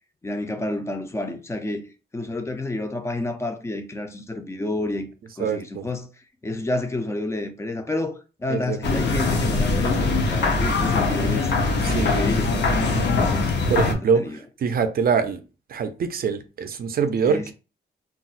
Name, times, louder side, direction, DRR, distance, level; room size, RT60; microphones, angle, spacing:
voice 1, 0.2-1.9 2.1-5.1 5.4-6.1 6.4-11.5 12.0-13.9 14.1-14.4 17.3-17.5, left 2 dB, 15° left, 0.3 m, -30 dB
voice 2, 5.4-5.9 8.5-8.9 11.8-12.2 13.7-14.3 14.6-15.4 15.7-17.5, right 6 dB, 50° right, 0.4 m, -24 dB
sound 1, 8.8-13.9, left 3 dB, 60° left, 0.6 m, -22 dB
2.3 x 2.0 x 3.8 m
wide cardioid pair, 175°, 20 cm